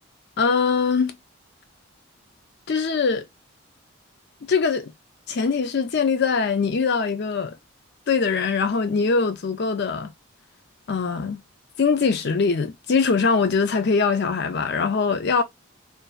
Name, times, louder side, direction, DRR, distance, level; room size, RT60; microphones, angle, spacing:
voice 1, 0.4-1.1 2.7-3.3 4.5-4.9 5.3-7.6 8.1-10.1 10.9-11.4 11.8-15.4, left 5 dB, 55° left, 0.5 m, -22 dB
2.5 x 2.2 x 2.3 m
head